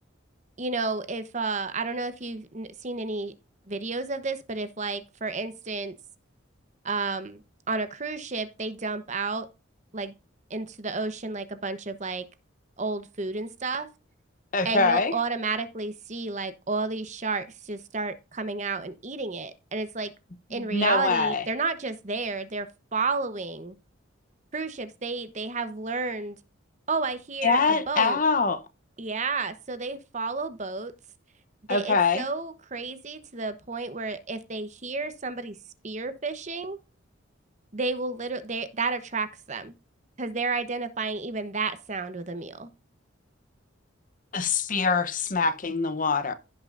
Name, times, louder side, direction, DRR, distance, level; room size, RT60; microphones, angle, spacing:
voice 1, 0.6-3.3 3.7-6.0 6.8-7.4 7.7-9.5 9.9-10.1 10.5-12.3 12.8-13.9 14.6-20.1 20.5-23.8 24.5-26.4 26.9-28.2 29.0-30.9 31.7-35.6 35.8-36.8 37.7-39.7 40.2-42.7, right 3 dB, 35° right, 1.0 m, -31 dB
voice 2, 14.5-15.1 20.5-21.4 27.4-28.6 31.7-32.2 44.3-46.3, left 4 dB, 40° left, 0.8 m, -24 dB
16.0 x 6.0 x 2.6 m
head